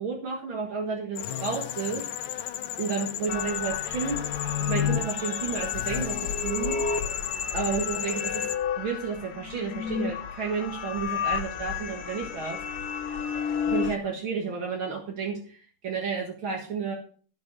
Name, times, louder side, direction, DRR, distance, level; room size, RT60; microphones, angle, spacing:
voice 1, 0.0-2.0 2.8-4.3 4.6-6.8 7.5-8.4 8.8-12.6 13.7-17.0, right 5 dB, 70° right, 1 dB, 2.6 m, -31 dB
sound 1, 1.2-8.6, left 12 dB, 85° left, 1.6 m, -34 dB
sound 2, 3.3-14.0, left 6 dB, 55° left, 1.5 m, -31 dB
15.0 x 5.2 x 6.1 m, 0.42 s
omnidirectional pair, 2.3 m